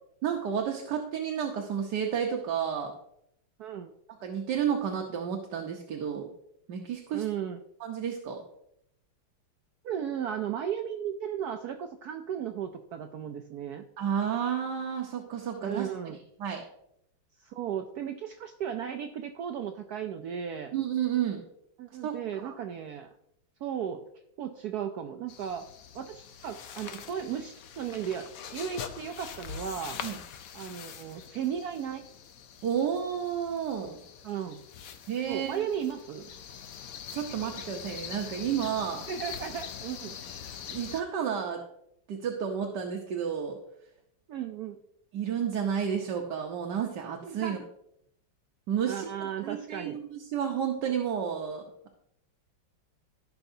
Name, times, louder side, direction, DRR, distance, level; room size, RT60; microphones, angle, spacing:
voice 1, 0.2-2.9 4.2-6.3 6.7-7.2 7.8-8.4 14.0-15.9 16.4-16.6 20.7-21.4 22.0-22.5 30.0-30.2 32.6-34.0 35.1-35.7 37.1-39.1 40.4-41.6 42.1-43.6 45.1-47.6 48.7-51.6, right 8 dB, 65° right, 1 dB, 1.4 m, -31 dB
voice 2, 3.6-3.9 7.1-7.6 9.8-13.8 15.6-16.2 17.4-20.7 21.8-23.1 23.6-24.0 24.4-25.7 25.9-30.0 30.5-32.0 34.2-34.6 35.3-36.3 39.1-40.2 44.3-44.8 47.2-47.6 48.9-50.0, right 8 dB, 85° right, 6 dB, 0.8 m, -35 dB
sound 1, 25.3-41.0, left 8 dB, 70° left, 0.8 m, -43 dB
15.0 x 5.8 x 2.7 m, 0.76 s
omnidirectional pair, 2.2 m